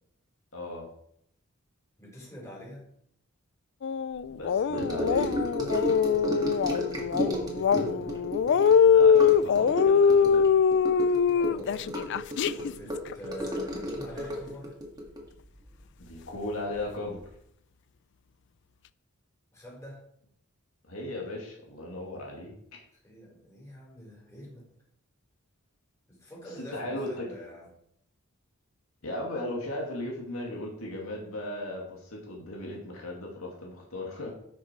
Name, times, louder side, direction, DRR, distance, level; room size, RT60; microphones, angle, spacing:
voice 1, 0.5-0.9 4.3-5.4 8.9-10.5 16.0-17.2 20.9-22.5 26.7-27.3 29.0-34.3, left 1 dB, 75° left, -1 dB, 2.3 m, -36 dB
voice 2, 2.0-2.9 7.1-8.3 11.3-12.1 12.6-14.7 19.5-20.0 23.0-24.7 26.1-27.7, equal, 15° left, -4 dB, 4.4 m, -46 dB
sound 1, 3.8-12.7 13.1-13.2, left 6 dB, 55° left, 0.3 m, -23 dB
Gurgling / Sink (filling or washing) / Trickle dribble, 4.7-16.4 16.6-17.0 17.2-17.3, equal, 20° right, 2.0 m, -33 dB
11.5 x 6.5 x 4.5 m, 0.72 s
head